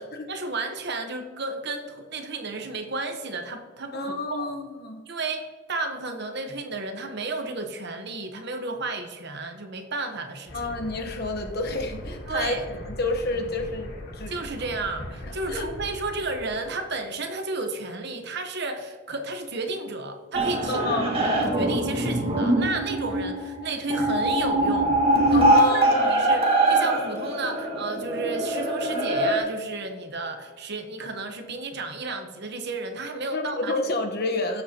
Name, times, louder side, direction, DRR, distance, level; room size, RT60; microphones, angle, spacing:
voice 1, 0.3-4.5 5.1-10.6 12.3-12.7 14.3-20.9 21.2-25.0 25.2-25.4 25.7-33.8, right 3 dB, 55° right, 6 dB, 1.0 m, -32 dB
voice 2, 3.9-5.0 10.5-12.6 13.0-14.3 15.2-15.7 20.7-21.3 25.3-26.3 33.3-34.6, left 2 dB, 50° left, 4 dB, 1.1 m, -29 dB
sound 1, 10.5-16.9, left 1 dB, 90° left, 3.1 m, -40 dB
sound 2, 20.3-29.4, right 1 dB, 25° right, 1.7 m, -23 dB
16.0 x 7.6 x 2.9 m, 1.5 s
head